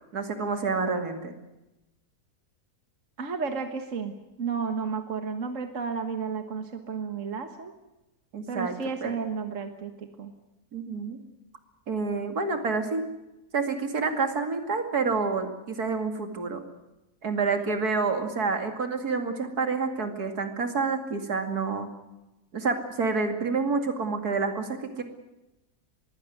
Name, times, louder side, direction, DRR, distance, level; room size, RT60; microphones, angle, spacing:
voice 1, 0.0-1.4 8.3-8.8 9.0-9.2 10.7-11.2 11.9-13.0 13.5-16.6 17.2-21.9 22.5-25.0, right 4 dB, 75° right, 7 dB, 3.0 m, -28 dB
voice 2, 3.2-7.7 8.5-10.3 17.5-17.7, right 5 dB, 55° right, 7 dB, 1.8 m, -32 dB
22.5 x 16.5 x 9.4 m, 0.98 s
omnidirectional pair, 1.7 m